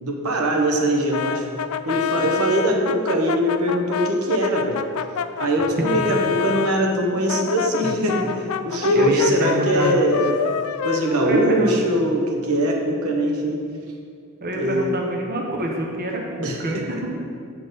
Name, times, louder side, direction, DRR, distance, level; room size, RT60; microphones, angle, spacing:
voice 1, 0.0-1.4 1.8-4.8 5.4-10.3 10.8-13.6 14.5-14.9 16.4-17.0, right 1 dB, 75° right, 1 dB, 1.0 m, -22 dB
Brass instrument, 1.1-6.8 7.3-12.1, left 7 dB, 70° left, 0.4 m, -27 dB
voice 2, 8.9-10.1 11.2-11.7 14.4-17.1, right 1 dB, 45° right, 0 dB, 0.9 m, -26 dB
7.7 x 4.4 x 6.5 m, 2.3 s
head